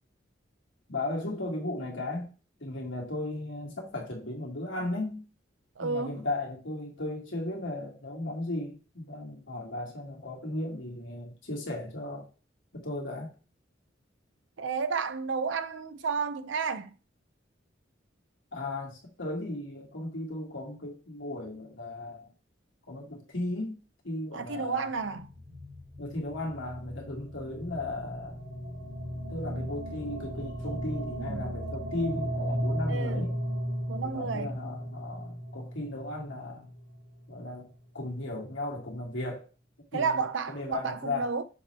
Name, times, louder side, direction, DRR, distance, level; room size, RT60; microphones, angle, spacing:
voice 1, 0.9-2.3 2.6-5.3 5.8-12.3 12.7-13.3 18.5-22.3 22.9-24.9 26.0-28.4 29.3-33.3 34.0-36.7 37.3-37.7 37.9-39.5 39.9-41.3, left 2 dB, 85° left, 2.2 m, -36 dB
voice 2, 5.8-6.2 14.6-16.9 24.3-25.3 31.2-31.4 32.9-33.3 33.9-34.6 39.9-41.4, right 5 dB, 80° right, 0.6 m, -31 dB
sound 1, 25.0-37.2, equal, 60° right, 2.2 m, -36 dB
6.9 x 4.5 x 3.4 m
head